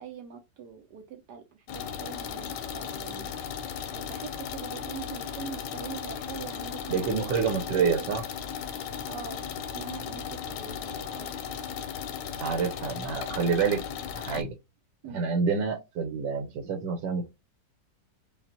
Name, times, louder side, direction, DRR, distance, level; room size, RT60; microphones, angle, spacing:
voice 1, 0.0-3.3 3.9-7.1 9.0-11.3 15.0-15.3, right 7 dB, 75° right, 1.2 m, -43 dB
sound 1, 1.7-14.4, left 8 dB, 85° left, 1.3 m, -36 dB
voice 2, 6.9-8.2 12.4-13.8 14.2-14.6 15.1-17.3, right 5 dB, 90° right, 1.4 m, -27 dB
5.2 x 2.4 x 2.7 m
omnidirectional pair, 1.9 m